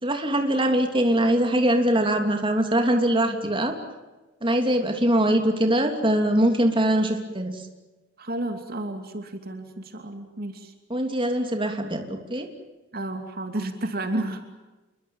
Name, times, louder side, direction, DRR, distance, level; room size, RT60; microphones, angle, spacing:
voice 1, 0.0-3.7 4.4-7.6 10.9-12.5, right 1 dB, 25° right, 4 dB, 3.0 m, -22 dB
voice 2, 8.2-10.7 12.9-14.4, right 1 dB, 55° right, 6 dB, 2.7 m, -31 dB
28.5 x 23.5 x 7.3 m, 1.2 s
head